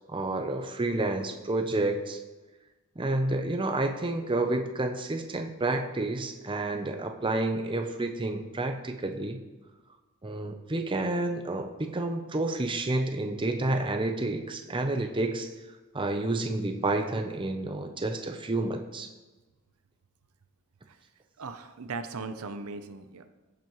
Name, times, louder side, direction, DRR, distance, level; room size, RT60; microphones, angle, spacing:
voice 1, 0.1-2.2 3.0-9.4 10.2-15.5 15.9-19.1, right 2 dB, 20° right, 5 dB, 0.6 m, -30 dB
voice 2, 21.4-23.3, right 4 dB, 75° right, 9 dB, 0.6 m, -38 dB
15.5 x 7.5 x 3.1 m, 1.2 s
head